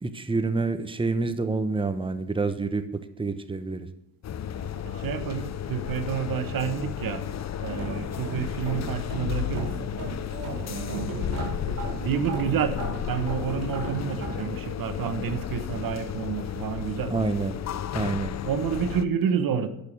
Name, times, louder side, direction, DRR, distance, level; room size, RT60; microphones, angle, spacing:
voice 1, 0.0-3.9 17.1-17.6 17.9-18.3, right 3 dB, 15° right, 10 dB, 1.0 m, -28 dB
sound 1, 4.2-19.0, left 10 dB, 45° left, 0.7 m, -33 dB
sound 2, 4.5-5.9 6.1-6.9 7.3-14.4, right 3 dB, 45° right, 5.6 m, -37 dB
voice 2, 4.8-7.3 7.6-9.7 10.7-11.4 12.0-17.2 18.4-19.7, right 7 dB, 65° right, 11 dB, 1.3 m, -29 dB
12.0 x 6.9 x 6.5 m, 0.82 s
cardioid pair, 75°, 37 cm